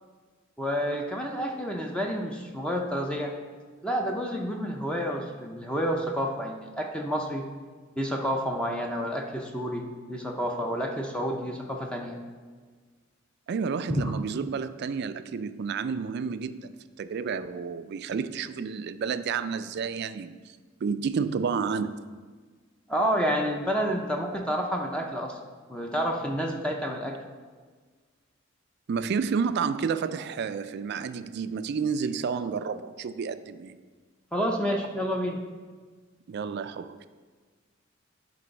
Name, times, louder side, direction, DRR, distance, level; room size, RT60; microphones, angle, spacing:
voice 1, 0.6-3.3 3.8-7.4 8.0-12.2 13.9-14.1 22.9-25.3 25.7-27.2 34.3-35.4, equal, 5° left, 1 dB, 0.5 m, -29 dB
voice 2, 13.5-20.4 20.8-21.9 28.9-33.8 36.3-37.1, right 6 dB, 55° right, 12 dB, 0.3 m, -30 dB
10.5 x 3.9 x 4.0 m, 1.5 s
head